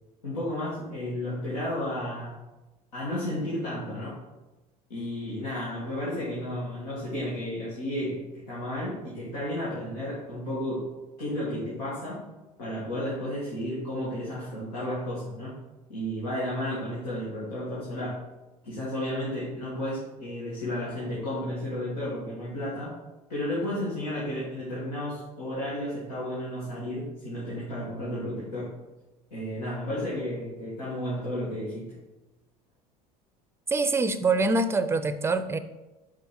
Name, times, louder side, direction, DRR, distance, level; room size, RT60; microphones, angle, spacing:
voice 1, 0.2-2.4 2.9-4.1 4.9-10.9 11.2-12.2 12.6-15.5 15.9-18.2 18.6-22.9 23.3-28.7 29.3-32.0, left 1 dB, 85° left, 2.0 m, -32 dB
voice 2, 33.7-35.6, right 3 dB, 10° right, 0.5 m, -24 dB
5.3 x 4.9 x 4.4 m
hypercardioid pair, 80°, 20 cm